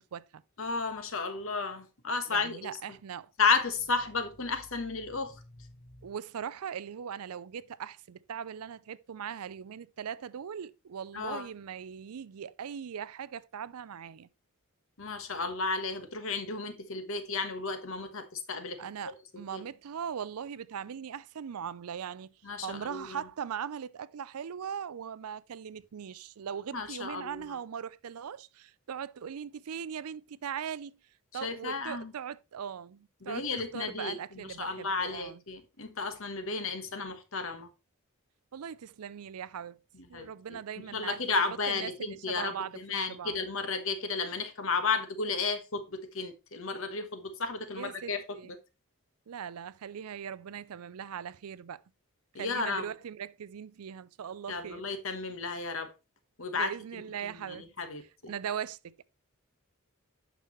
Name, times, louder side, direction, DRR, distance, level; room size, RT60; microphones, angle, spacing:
voice 1, 0.0-0.4 2.3-3.3 6.0-14.3 18.8-22.3 22.6-31.0 31.3-35.4 38.5-39.8 40.1-41.2 41.7-43.4 47.8-48.5 49.3-51.8 52.4-54.8 56.5-57.7 58.3-59.0, right 8 dB, 90° right, 0.4 m, -40 dB
voice 2, 0.6-2.7 3.4-6.0 11.1-11.5 15.0-18.8 19.5-19.6 22.4-23.2 26.7-27.4 31.4-32.1 33.2-37.7 40.1-40.6 40.9-48.2 52.3-52.8 54.5-55.9 56.4-57.0 57.3-58.3, left 4 dB, 65° left, 1.3 m, -33 dB
9.1 x 6.1 x 3.1 m
head